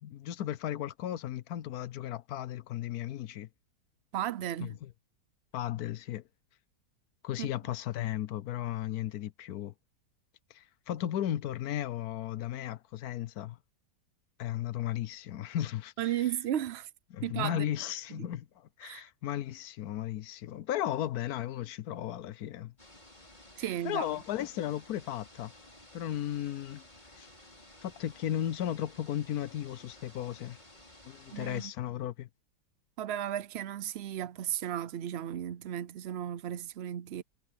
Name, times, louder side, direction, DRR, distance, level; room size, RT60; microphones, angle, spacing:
voice 1, 0.0-3.5 4.6-4.9 5.5-6.2 7.2-9.7 10.5-13.6 14.4-16.2 17.1-22.7 23.8-25.5 25.9-26.8 27.1-27.3 27.8-30.6 31.0-32.3, left 12 dB, 70° left, 1.1 m, -35 dB
voice 2, 4.1-4.8 7.4-7.5 16.0-16.9 17.2-17.6 18.1-18.3 18.8-19.0 23.6-24.1 31.3-31.7 33.0-37.2, right 11 dB, 70° right, 0.6 m, -35 dB
sound 1, 22.8-31.7, left 1 dB, 25° left, 5.1 m, -55 dB
omnidirectional pair, 1.8 m